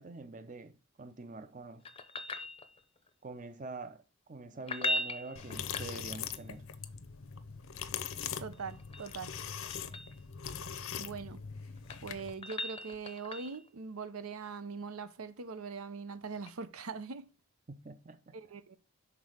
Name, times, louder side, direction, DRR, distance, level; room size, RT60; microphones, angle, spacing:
voice 1, 0.0-1.8 3.2-4.0 4.3-6.6 17.7-18.4, right 3 dB, 35° right, 0.6 m, -45 dB
sound 1, 1.8-3.1 4.5-6.4 8.5-10.2 11.6-13.7 16.4-16.5, left 2 dB, 25° left, 0.6 m, -39 dB
sound 2, 5.4-12.3, left 7 dB, 75° left, 0.7 m, -41 dB
voice 2, 8.4-9.3 11.0-11.4 12.0-17.3 18.3-18.8, right 5 dB, 90° right, 0.6 m, -42 dB
6.1 x 4.1 x 4.8 m
head